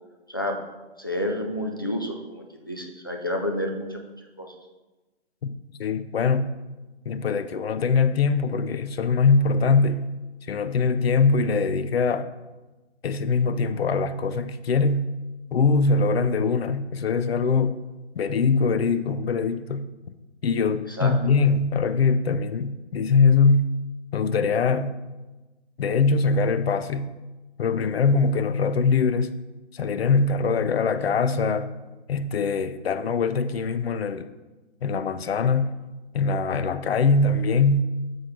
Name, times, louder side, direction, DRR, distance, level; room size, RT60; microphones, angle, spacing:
voice 1, 1.0-4.5 20.9-21.1, left 1 dB, 20° left, 0.3 m, -30 dB
voice 2, 5.8-6.5 7.1-10.1 10.5-12.3 13.0-15.1 15.5-17.7 18.2-19.9 20.4-23.7 24.1-25.0 25.8-27.1 27.6-29.3 29.7-31.7 32.1-34.3 34.8-35.7 36.1-37.9, left 4 dB, 60° left, 0.6 m, -22 dB
7.7 x 4.1 x 4.9 m
hypercardioid pair, 150°, 34 cm